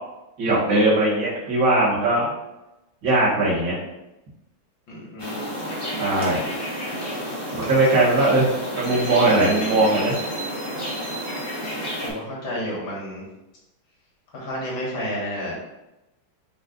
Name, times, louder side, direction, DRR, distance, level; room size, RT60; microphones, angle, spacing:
voice 1, 0.4-2.3 3.0-3.8 6.0-6.4 7.5-8.5 8.8-10.2, right 2 dB, 65° right, -8 dB, 2.1 m, -19 dB
voice 2, 4.9-5.4 12.0-13.2 14.3-15.5, equal, 70° left, -5 dB, 2.1 m, -30 dB
sound 1, 5.2-12.1, equal, 15° left, 1.0 m, -30 dB
5.2 x 2.3 x 3.8 m, 0.94 s
omnidirectional pair, 2.2 m